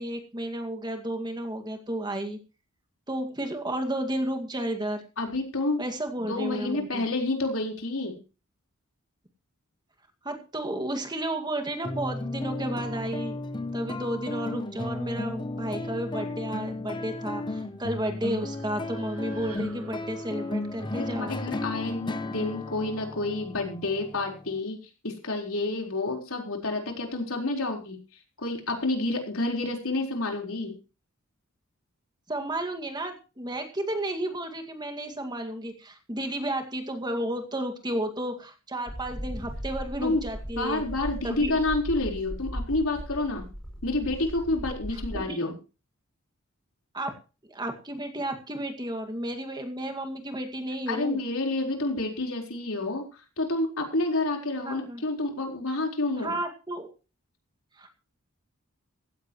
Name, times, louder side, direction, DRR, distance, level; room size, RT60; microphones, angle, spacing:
voice 1, 0.0-2.4 3.1-5.0 5.8-7.1 10.2-13.4 13.7-21.3 32.3-40.8 41.2-41.5 45.1-45.4 46.9-47.2 47.5-51.2 54.6-55.0 56.2-56.9 57.8-57.9, right 1 dB, 20° right, 5 dB, 2.1 m, -32 dB
voice 2, 5.2-5.9 6.2-8.2 20.9-24.8 25.0-28.0 28.4-30.7 40.0-40.2 40.6-43.5 43.8-45.5 50.9-53.0 53.4-56.4, left 2 dB, 70° left, 2 dB, 4.3 m, -29 dB
sound 1, 11.8-24.6, left 2 dB, 20° left, 0.8 m, -34 dB
sound 2, 17.7-22.0, right 2 dB, 85° right, 6.8 m, -51 dB
sound 3, 38.9-45.3, equal, 5° left, 6.8 m, -37 dB
16.0 x 15.5 x 3.1 m, 0.32 s
head